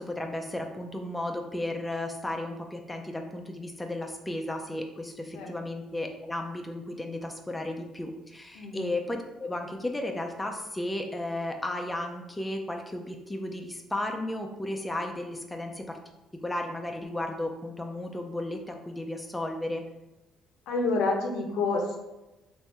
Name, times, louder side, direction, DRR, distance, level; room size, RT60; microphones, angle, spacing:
voice 1, 0.0-16.0 16.4-19.8, left 1 dB, 10° left, 2 dB, 0.5 m, -34 dB
voice 2, 20.7-22.0, left 3 dB, 80° left, 1 dB, 0.9 m, -28 dB
3.4 x 2.6 x 4.2 m, 1.0 s
cardioid pair, 95°, 0 cm